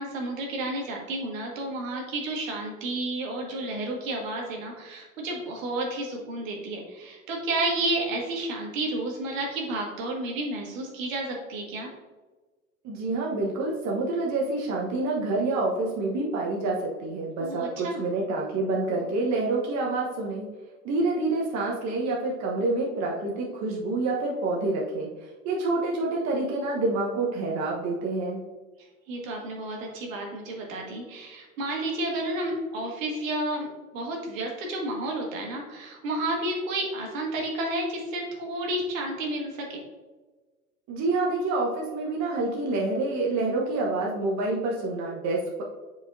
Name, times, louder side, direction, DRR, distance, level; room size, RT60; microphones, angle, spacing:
voice 1, 0.0-11.9 17.4-18.0 29.1-39.8, right 1 dB, 70° right, 0 dB, 1.9 m, -31 dB
voice 2, 12.8-20.5 20.8-28.4 40.9-45.6, right 2 dB, 40° right, -2 dB, 1.2 m, -27 dB
7.5 x 5.1 x 2.7 m, 1.2 s
hypercardioid pair, 80°, 41 cm